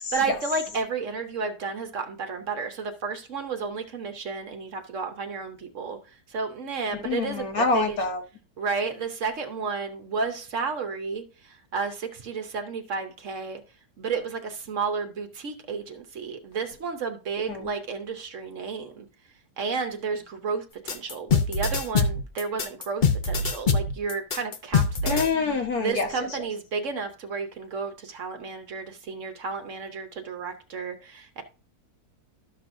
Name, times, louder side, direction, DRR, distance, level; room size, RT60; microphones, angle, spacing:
voice 1, 0.1-6.0 6.3-8.0 8.6-13.6 14.0-19.1 19.6-25.5 25.8-31.4, right 4 dB, 55° right, 1.1 m, -32 dB
voice 2, 7.0-8.2 17.5-17.7 25.1-26.1, left 4 dB, 70° left, 1.6 m, -26 dB
sound 1, 20.9-25.3, left 4 dB, 45° left, 0.6 m, -24 dB
12.5 x 6.0 x 2.6 m
omnidirectional pair, 1.7 m